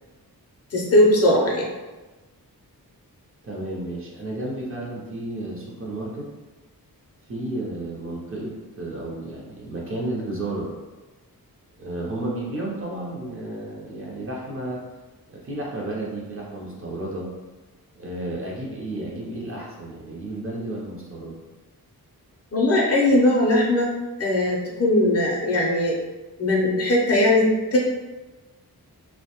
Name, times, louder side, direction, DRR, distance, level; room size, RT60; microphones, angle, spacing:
voice 1, 0.7-1.8 22.5-23.9 24.2-26.0 26.4-27.8, left 1 dB, 45° left, -3 dB, 0.5 m, -19 dB
voice 2, 3.4-6.3 7.3-10.7 11.8-14.8 15.3-17.3 18.0-21.4, right 1 dB, 35° right, -4 dB, 0.5 m, -32 dB
2.5 x 2.1 x 2.8 m, 1.2 s
wide cardioid pair, 170°, 37 cm